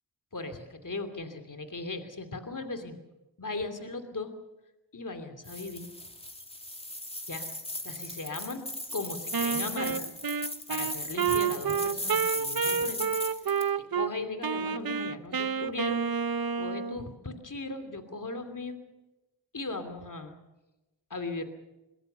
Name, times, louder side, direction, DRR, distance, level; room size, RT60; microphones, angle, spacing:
voice 1, 0.3-3.0 3.4-4.3 4.9-5.9 7.3-7.5 7.8-8.6 8.9-10.1 10.7-13.0 13.8-16.0 16.6-18.8 19.5-20.3 21.1-21.4, left 3 dB, 45° left, 8 dB, 2.8 m, -37 dB
sound 1, 5.5-13.7, left 1 dB, 15° left, 2.4 m, -37 dB
Wind instrument woodwind instrument, 9.3-14.1 14.4-17.0, right 6 dB, 55° right, 0.8 m, -29 dB
22.0 x 21.0 x 6.9 m, 1.0 s
cardioid pair, 45°, 43 cm